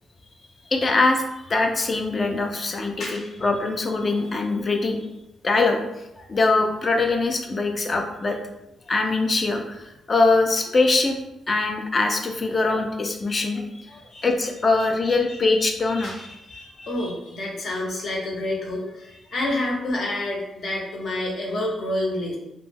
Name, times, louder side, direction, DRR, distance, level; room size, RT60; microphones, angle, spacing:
voice 1, 0.7-5.0 5.4-5.8 6.2-8.4 8.9-11.2 11.5-13.6 13.9-16.2, left 3 dB, 30° left, 3 dB, 0.4 m, -22 dB
voice 2, 3.0-3.4 14.1-14.3 15.3-15.7 16.0-22.4, left 1 dB, 60° left, -2 dB, 0.7 m, -29 dB
2.2 x 2.1 x 3.2 m, 0.88 s
cardioid pair, 115°, 0 cm